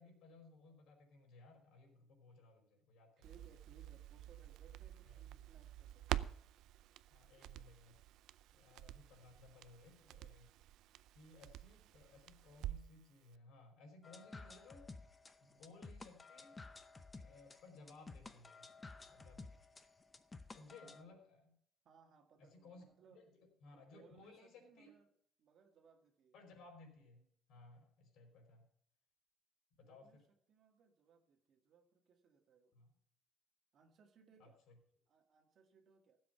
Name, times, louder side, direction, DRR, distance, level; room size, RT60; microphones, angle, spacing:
voice 1, 0.0-3.3 5.0-5.1 7.1-8.0 8.5-10.5 11.1-14.9 15.4-16.6 17.2-18.6 19.1-19.5 20.5-21.5 22.4-24.9 26.3-28.7 29.7-30.2 32.7-32.9 34.4-34.8, left 3 dB, 65° left, 3 dB, 4.9 m, -61 dB
voice 2, 3.2-6.1 20.8-21.2 21.9-23.2 23.7-25.1 25.4-26.4 29.8-32.8 33.7-34.6 35.1-36.2, right 5 dB, 45° right, 4 dB, 1.8 m, -67 dB
Crackle, 3.2-13.0 13.3-13.4, right 13 dB, 70° right, 0.5 m, -48 dB
sound 1, 14.0-21.0, left 3 dB, 15° left, 0.7 m, -54 dB
16.0 x 7.7 x 5.7 m, 0.65 s
cardioid pair, 170°, 0 cm